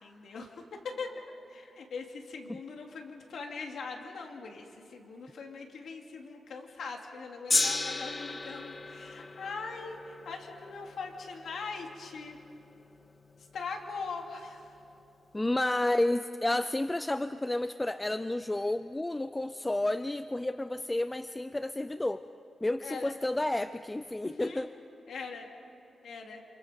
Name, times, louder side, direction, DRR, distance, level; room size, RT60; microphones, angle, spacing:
voice 1, 0.0-12.4 13.5-14.8 22.8-23.1 24.2-24.6 25.1-25.5 26.0-26.4, left 4 dB, 80° left, 2 dB, 2.7 m, -41 dB
Gong, 7.5-13.9 14.6-14.7, left 3 dB, 30° left, 1.6 m, -35 dB
voice 2, 15.3-22.2 22.6-24.7, left 1 dB, 15° left, 12 dB, 0.4 m, -31 dB
29.0 x 28.0 x 5.2 m, 3.0 s
wide cardioid pair, 115°, 0 cm